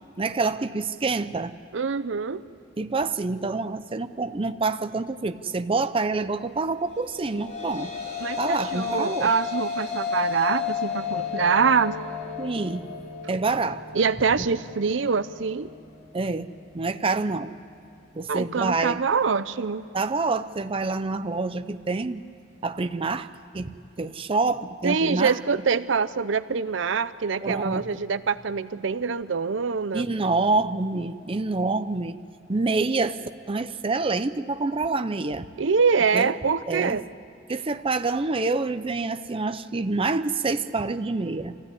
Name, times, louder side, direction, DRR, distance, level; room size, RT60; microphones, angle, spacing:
voice 1, 0.2-1.6 2.8-7.9 8.4-9.3 12.4-12.9 13.3-13.8 16.1-17.5 18.1-19.0 19.9-22.2 22.6-23.3 23.5-25.4 27.4-27.8 29.9-32.2 32.5-33.2 33.5-35.5 36.1-36.3 36.7-37.0 37.5-41.6, right 3 dB, 30° right, 9 dB, 0.6 m, -27 dB
voice 2, 1.7-2.4 8.2-12.0 13.9-15.7 18.3-19.9 24.8-30.1 35.6-37.0, right 5 dB, 75° right, 14 dB, 0.6 m, -24 dB
sound 1, 7.1-15.7, left 6 dB, 35° left, 3.6 m, -33 dB
25.0 x 16.0 x 9.7 m, 2.6 s
head